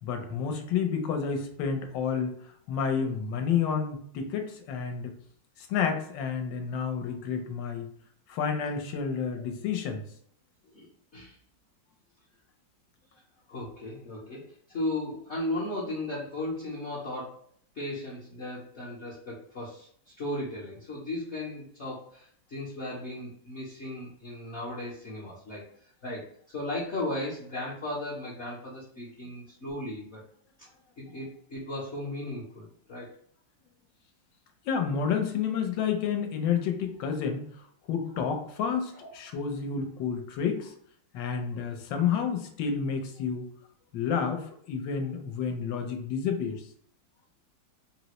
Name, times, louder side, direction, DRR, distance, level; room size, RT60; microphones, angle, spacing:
voice 1, 0.0-2.4 2.7-5.1 5.6-7.9 8.3-10.0 34.6-37.4 37.9-40.7 41.1-43.5 43.9-46.6, left 6 dB, 75° left, 5 dB, 1.3 m, -30 dB
voice 2, 13.5-17.4 17.7-25.6 26.0-26.3 26.5-30.2 31.0-33.1 39.0-39.1, left 1 dB, 55° left, -7 dB, 0.8 m, -36 dB
4.0 x 2.0 x 2.9 m, 0.62 s
omnidirectional pair, 2.1 m